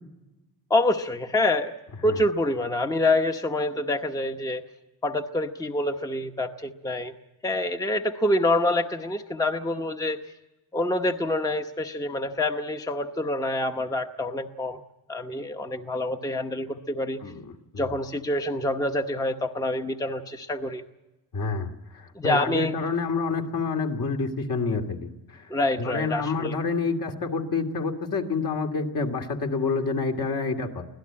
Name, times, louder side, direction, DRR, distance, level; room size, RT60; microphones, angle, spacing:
voice 1, 0.7-1.7 2.0-4.6 5.0-7.1 7.4-10.2 10.7-14.8 15.1-17.2 17.8-20.8 22.1-22.7 25.5-26.6, left 1 dB, 10° left, 6 dB, 0.9 m, -26 dB
voice 2, 17.2-17.9 21.3-25.5 25.8-30.9, left 4 dB, 60° left, 2 dB, 2.6 m, -28 dB
24.5 x 17.0 x 8.7 m, 1.0 s
cardioid pair, 140°, 38 cm